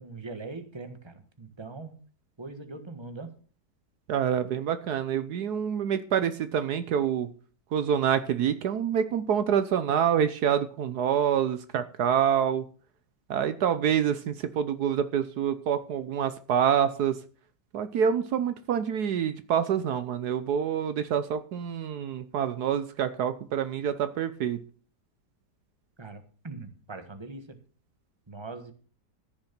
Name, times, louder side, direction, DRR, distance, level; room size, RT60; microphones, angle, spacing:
voice 1, 0.0-2.0 2.4-3.3 26.0-27.6 28.3-28.7, right 3 dB, 15° right, 8 dB, 1.4 m, -41 dB
voice 2, 4.1-7.3 7.7-12.6 13.3-17.2 17.7-24.6, right 8 dB, 70° right, 12 dB, 1.3 m, -26 dB
14.5 x 6.8 x 6.0 m, 0.42 s
omnidirectional pair, 1.8 m